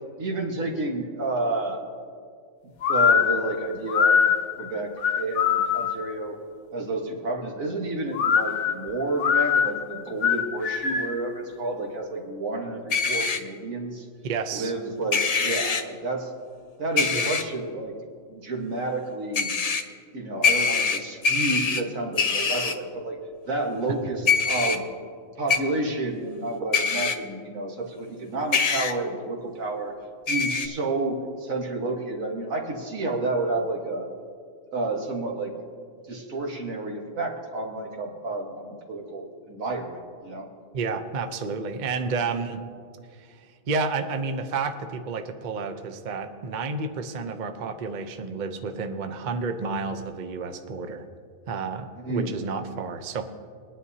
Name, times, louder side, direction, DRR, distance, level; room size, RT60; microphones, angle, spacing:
voice 1, 0.2-1.8 2.9-4.3 4.6-4.9 5.2-6.4 6.7-14.1 14.5-16.3 16.8-17.9 18.3-19.5 20.1-23.2 23.5-24.8 25.4-29.9 30.3-34.1 34.7-35.5 36.1-40.5 52.0-52.4, right 2 dB, 80° right, 1 dB, 1.8 m, -30 dB
sound 1, 2.8-6.1 8.1-11.2, left 7 dB, 65° left, 0.9 m, -23 dB
sound 2, 12.9-13.4 15.1-15.8 17.0-17.4 19.3-19.8 20.4-21.8 22.2-22.7 24.3-24.8 25.5-25.6 26.7-27.1 28.5-28.9 30.3-30.7, left 5 dB, 45° left, 0.5 m, -23 dB
voice 2, 14.2-14.7 17.1-17.3 40.7-42.7 43.1-51.1 51.5-53.3, right 4 dB, 45° right, 7 dB, 0.7 m, -31 dB
21.5 x 10.0 x 2.8 m, 2.1 s
omnidirectional pair, 1.4 m